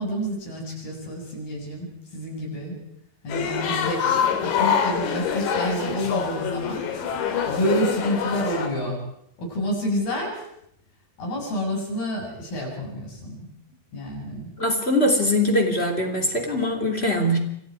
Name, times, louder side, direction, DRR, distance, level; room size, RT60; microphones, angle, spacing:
voice 1, 0.0-2.8 3.2-6.9 7.1-9.0 9.4-10.4 11.2-13.5 13.9-14.5, equal, 55° left, -2 dB, 8.9 m, -29 dB
sound 1, 3.3-8.7, left 7 dB, 80° left, 4.9 m, -25 dB
voice 2, 14.6-17.4, left 1 dB, 15° left, 4 dB, 2.7 m, -22 dB
29.5 x 24.5 x 4.9 m, 0.73 s
omnidirectional pair, 5.1 m